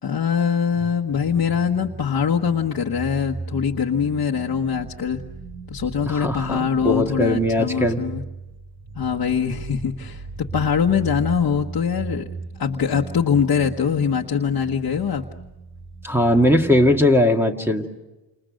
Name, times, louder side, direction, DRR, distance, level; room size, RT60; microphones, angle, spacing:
voice 1, 0.0-5.2 5.7-8.2 8.9-12.3 12.6-15.2, left 7 dB, 60° left, 0 dB, 1.3 m, -23 dB
sound 1, 0.7-17.2, right 4 dB, 70° right, 6.7 m, -37 dB
voice 2, 6.1-6.6 6.8-8.0 16.0-17.9, left 1 dB, 5° right, 2 dB, 2.0 m, -19 dB
29.5 x 27.5 x 6.4 m, 1.1 s
wide cardioid pair, 140°, 39 cm